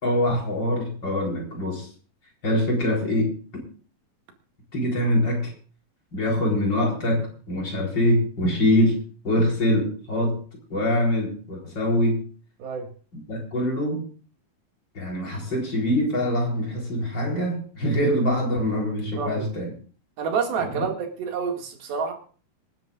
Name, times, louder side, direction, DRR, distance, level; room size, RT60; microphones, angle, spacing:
voice 1, 0.0-1.9 2.4-3.3 4.7-5.5 6.1-9.0 9.2-10.4 10.7-12.2 13.1-14.1 14.9-19.7 20.6-20.8, left 1 dB, 30° left, -1 dB, 4.6 m, -24 dB
voice 2, 19.1-19.5 20.2-22.1, right 6 dB, 80° right, 2 dB, 3.9 m, -28 dB
27.0 x 10.5 x 2.5 m, 0.41 s
omnidirectional pair, 4.3 m